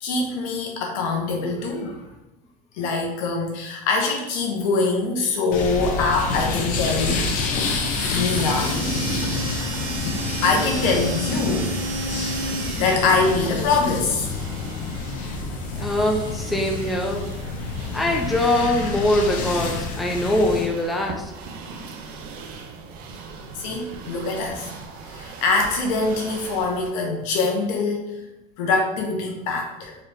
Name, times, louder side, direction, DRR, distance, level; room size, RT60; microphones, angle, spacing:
voice 1, 0.0-2.0 2.7-7.3 8.1-8.7 10.4-11.7 12.8-14.3 23.5-24.7 25.0-28.2 28.6-29.9, left 3 dB, 75° left, 1 dB, 1.0 m, -23 dB
sound 1, 5.5-20.7, left 4 dB, 50° left, 0.8 m, -28 dB
sound 2, 7.6-13.5, right 3 dB, 85° right, 0.9 m, -31 dB
sound 3, 13.0-26.9, right 4 dB, 60° right, 0.6 m, -40 dB
voice 2, 15.8-17.2 17.9-21.3, left 1 dB, ahead, -1 dB, 0.5 m, -22 dB
4.1 x 3.3 x 2.7 m, 0.96 s
supercardioid pair, 125°, 18 cm